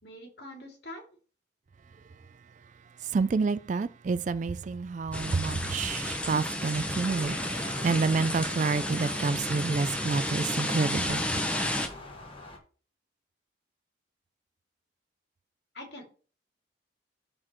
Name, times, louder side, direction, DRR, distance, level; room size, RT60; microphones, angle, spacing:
voice 1, 0.0-1.0 15.7-16.1, left 1 dB, 60° left, 2.6 m, -44 dB
voice 2, 3.1-11.2, right 4 dB, 40° right, 0.3 m, -29 dB
sound 1, 5.1-11.9, left 1 dB, 5° left, 0.8 m, -32 dB
sound 2, 7.0-12.6, left 2 dB, 30° left, 1.5 m, -44 dB
13.0 x 4.4 x 3.0 m
head